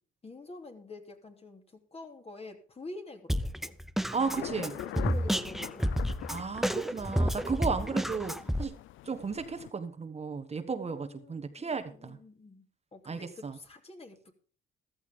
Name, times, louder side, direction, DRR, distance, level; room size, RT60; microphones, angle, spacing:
voice 1, 0.2-3.8 4.4-6.1 7.8-8.1 10.7-12.7 12.9-14.3, left 2 dB, 30° left, 4 dB, 2.9 m, -47 dB
Drum kit, 3.3-8.6, equal, ahead, 0.7 m, -30 dB
voice 2, 4.1-4.7 6.3-8.8 9.0-12.2 13.1-13.6, right 5 dB, 30° right, 8 dB, 1.3 m, -34 dB
sound 1, 4.3-9.7, left 15 dB, 80° left, 0.5 m, -44 dB
14.5 x 13.0 x 3.7 m, 0.38 s
cardioid pair, 90°, 20 cm